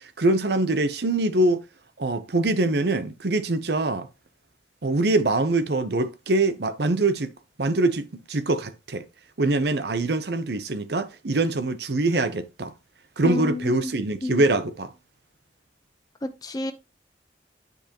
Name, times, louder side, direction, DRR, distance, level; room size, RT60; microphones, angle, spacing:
voice 1, 0.2-1.6 2.0-4.1 4.8-7.3 7.6-9.0 9.4-12.7 13.2-14.9, right 2 dB, 65° right, 0.7 m, -23 dB
voice 2, 13.2-13.9 14.2-14.4 16.2-16.7, left 2 dB, 20° left, 0.7 m, -29 dB
9.2 x 5.1 x 3.0 m
head